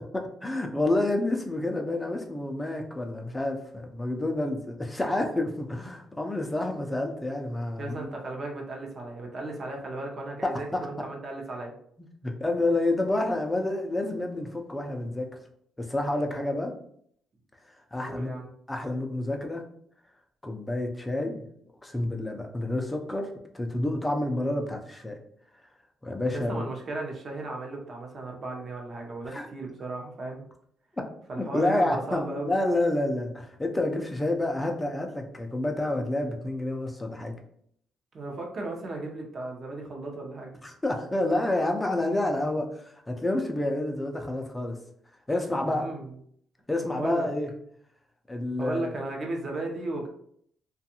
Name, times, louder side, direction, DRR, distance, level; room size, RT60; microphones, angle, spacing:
voice 1, 0.1-8.1 10.4-10.9 12.0-15.3 15.8-16.7 17.9-18.3 18.7-19.6 20.4-21.5 21.8-25.2 26.0-26.6 29.2-29.5 31.4-37.4 40.6-44.8 45.3-45.9 46.7-47.5 48.3-48.9, left 2 dB, 15° left, 3 dB, 0.5 m, -29 dB
voice 2, 7.8-11.7 18.0-18.5 26.3-30.4 31.3-32.6 38.1-40.6 45.6-46.1 46.8-47.3 48.6-50.1, right 2 dB, 45° right, 1 dB, 0.7 m, -35 dB
2.5 x 2.3 x 2.8 m, 0.67 s
cardioid pair, 90°, 0 cm